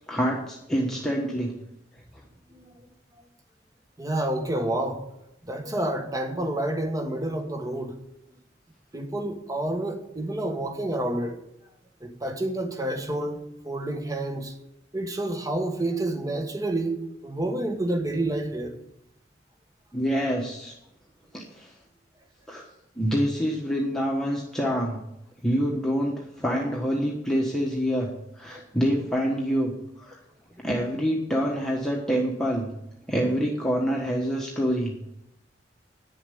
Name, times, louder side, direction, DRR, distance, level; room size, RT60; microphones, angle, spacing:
voice 1, 0.1-1.5 19.9-20.7 21.3-21.7 22.5-22.6 23.0-25.0 25.4-28.1 28.3-29.7 30.0-30.2 30.6-32.7 33.1-34.9, equal, 5° left, -3 dB, 1.3 m, -26 dB
voice 2, 4.0-5.0 5.5-8.0 8.9-11.3 12.0-14.5 14.9-18.8 28.5-28.6, right 1 dB, 20° right, 6 dB, 1.3 m, -29 dB
9.8 x 7.1 x 9.3 m, 0.85 s
head